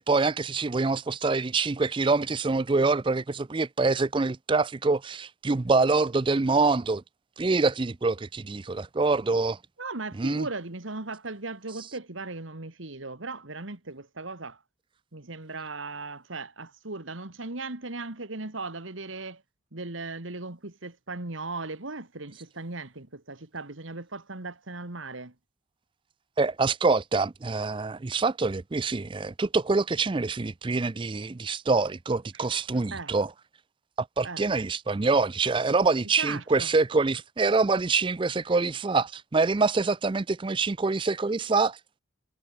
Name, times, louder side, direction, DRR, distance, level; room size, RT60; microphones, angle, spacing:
voice 1, 0.0-7.0 7.4-9.6 10.2-10.5 26.4-33.3 34.0-42.0, right 3 dB, 25° right, 0.4 m, -25 dB
voice 2, 9.8-14.6 15.1-19.4 19.7-25.3 32.9-33.1 34.2-34.4 36.2-36.7, right 3 dB, 80° right, 2.3 m, -37 dB
head